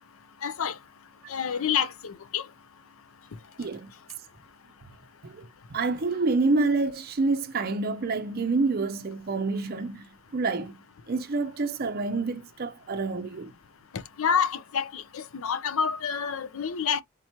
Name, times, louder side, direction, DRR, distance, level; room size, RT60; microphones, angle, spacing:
voice 1, 0.4-0.7 1.3-2.4 14.2-17.0, left 7 dB, 65° left, 0.6 m, -28 dB
voice 2, 3.6-3.9 5.2-10.1 10.3-10.7 11.1-13.5, right 3 dB, 45° right, 0.5 m, -27 dB
3.7 x 2.9 x 4.4 m
head